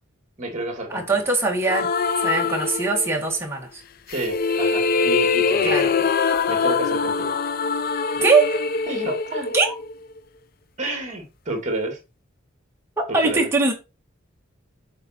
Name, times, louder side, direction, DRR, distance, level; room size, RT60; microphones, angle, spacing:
voice 1, 0.4-1.2 4.1-6.0 6.5-7.3 8.9-9.6 10.8-12.0 13.1-13.5, right 1 dB, 35° right, 2.3 m, -30 dB
voice 2, 0.9-1.9 2.2-3.8 5.6-6.0 8.2-8.7 9.5-9.7 13.0-13.7, right 3 dB, 10° right, 1.8 m, -21 dB
sound 1, 1.7-3.4 4.1-10.2, left 4 dB, 45° left, 0.4 m, -23 dB
7.7 x 4.2 x 4.4 m
head